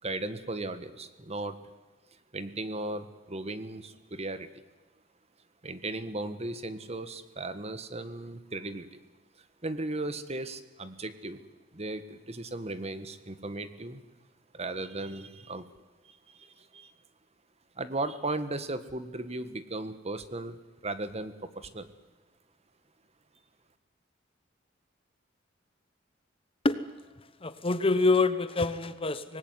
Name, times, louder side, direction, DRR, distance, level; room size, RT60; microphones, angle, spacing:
voice 1, 0.0-1.6 2.3-4.5 5.6-9.0 9.4-11.4 11.7-14.0 14.5-15.7 16.0-16.9 17.8-21.9, right 2 dB, 35° right, 12 dB, 1.5 m, -36 dB
voice 2, 27.4-29.4, left 3 dB, 30° left, 13 dB, 1.1 m, -26 dB
25.0 x 19.0 x 9.6 m, 1.2 s
head